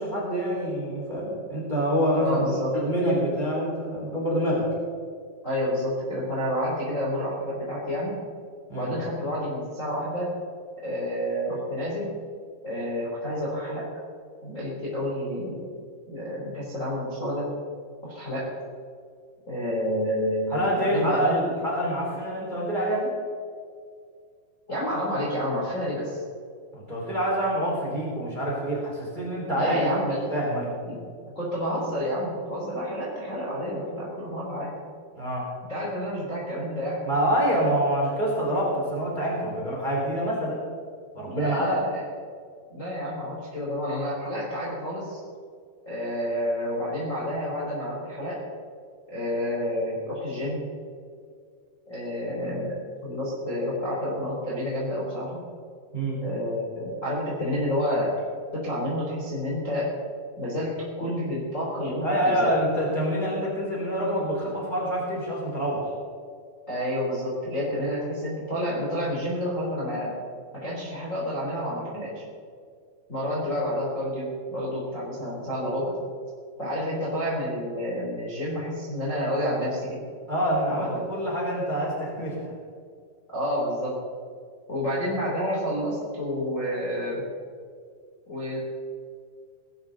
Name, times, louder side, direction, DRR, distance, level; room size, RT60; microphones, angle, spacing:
voice 1, 0.0-2.4 2.7-4.7 8.7-8.9 20.5-23.1 26.7-29.9 30.3-30.7 35.1-35.5 37.0-40.6 41.1-41.7 55.9-56.2 62.0-65.9 80.3-82.5, equal, 10° right, -4 dB, 3.9 m, -26 dB
voice 2, 2.2-2.7 5.4-8.2 8.7-10.3 10.8-12.1 12.6-13.8 14.4-15.6 16.1-17.5 18.0-18.5 19.5-21.4 24.7-26.2 29.5-30.3 30.8-31.0 31.3-34.7 35.7-37.0 41.2-41.9 42.7-45.2 45.8-48.4 49.1-50.6 51.9-52.7 53.0-55.4 56.2-58.1 58.5-59.9 60.4-62.5 66.7-70.1 70.5-72.2 73.1-75.9 76.6-80.0 80.7-80.9 83.3-84.0 84.7-87.2 88.3-88.6, equal, 20° left, -5 dB, 3.2 m, -29 dB
20.5 x 12.5 x 4.0 m, 2.1 s
omnidirectional pair, 5.2 m